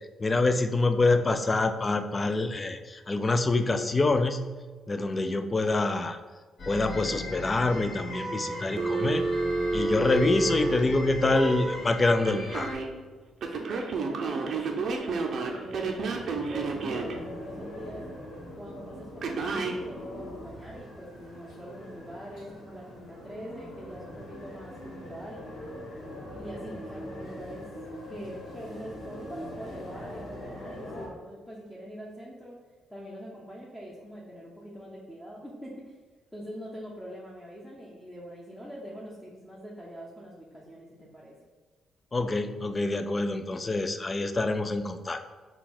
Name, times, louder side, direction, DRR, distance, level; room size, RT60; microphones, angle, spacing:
voice 1, 0.2-4.5 4.9-6.2 6.7-9.3 9.7-12.7 42.1-45.2, left 2 dB, 25° left, 8 dB, 0.3 m, -26 dB
sound 1, 6.6-12.7, left 1 dB, 50° left, 1.4 m, -38 dB
Telephone, 8.8-11.5 12.2-12.9 13.4-17.1 19.2-19.8, right 3 dB, 60° right, 0.5 m, -30 dB
voice 2, 13.5-18.1 18.5-25.5 26.3-27.6 28.1-32.6 32.9-36.0 36.3-41.4, equal, 5° left, -5 dB, 0.7 m, -43 dB
sound 2, 15.3-31.1, left 1 dB, 70° left, 1.4 m, -42 dB
4.0 x 2.3 x 4.2 m, 1.4 s
cardioid pair, 90°, 0 cm